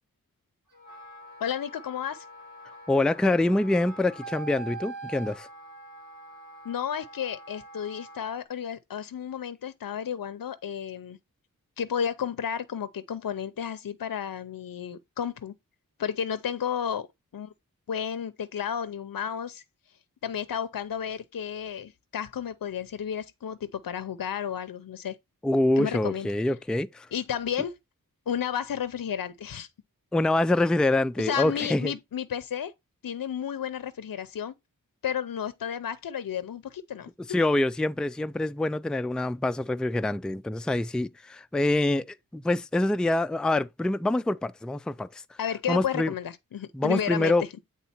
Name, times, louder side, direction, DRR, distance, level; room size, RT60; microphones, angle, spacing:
Wind instrument woodwind instrument, 0.7-8.4, right 3 dB, 65° right, 3.2 m, -44 dB
voice 1, 1.4-2.2 6.6-11.2 11.8-15.5 16.0-17.1 17.3-17.5 17.9-19.6 20.2-25.2 25.8-26.3 27.1-27.8 28.3-29.7 31.2-32.7 33.0-34.5 35.0-37.1 45.4-47.3, left 8 dB, 70° left, 0.6 m, -32 dB
voice 2, 2.9-5.5 25.4-27.1 30.1-31.9 37.3-45.1 45.7-46.1 46.7-47.4, left 2 dB, ahead, 0.4 m, -25 dB
8.3 x 3.7 x 4.2 m
wide cardioid pair, 70°, 35 cm